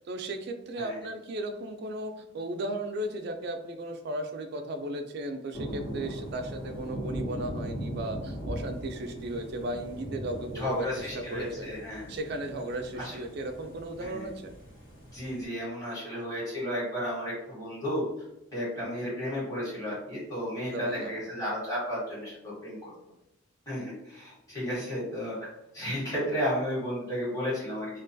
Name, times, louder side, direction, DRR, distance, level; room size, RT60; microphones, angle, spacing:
voice 1, 0.1-10.9 11.1-11.7 12.1-14.5 20.6-21.1, right 1 dB, 50° right, 6 dB, 0.3 m, -35 dB
sound 1, 5.5-15.4, equal, 75° left, 1.1 m, -39 dB
voice 2, 10.5-12.2 12.9-13.2 14.0-14.2 15.1-18.0 18.5-22.9 23.7-25.4 25.7-28.0, equal, 15° left, -10 dB, 1.1 m, -33 dB
2.3 x 2.2 x 2.6 m, 0.88 s
head